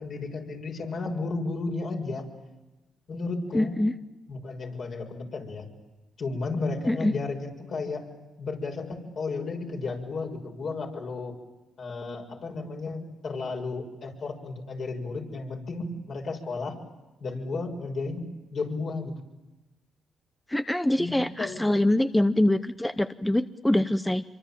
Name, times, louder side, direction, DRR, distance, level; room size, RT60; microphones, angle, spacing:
voice 1, 0.0-2.3 3.1-3.8 4.3-5.7 6.2-8.1 8.4-11.3 11.8-16.8 17.2-18.2 18.5-19.1 21.0-21.9, left 3 dB, 60° left, 1 dB, 6.8 m, -33 dB
voice 2, 3.5-3.9 6.9-7.1 20.5-24.2, left 1 dB, 10° left, 11 dB, 0.9 m, -24 dB
26.0 x 24.5 x 8.9 m, 1.1 s
cardioid pair, 70°, 0 cm